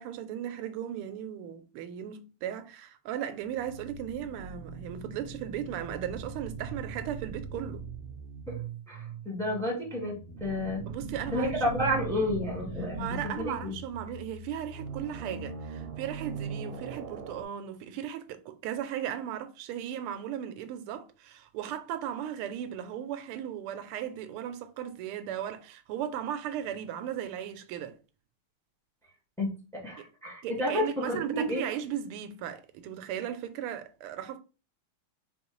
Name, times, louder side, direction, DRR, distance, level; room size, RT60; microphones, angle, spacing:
voice 1, 0.0-7.8 10.9-11.8 12.9-28.0 30.0-30.1 30.4-34.4, right 10 dB, 90° right, 1.5 m, -36 dB
sound 1, 3.4-17.4, right 5 dB, 70° right, 1.4 m, -40 dB
voice 2, 8.9-10.8 11.3-13.7 29.4-31.6, left 1 dB, ahead, 1.2 m, -31 dB
4.2 x 3.4 x 3.0 m
omnidirectional pair, 2.4 m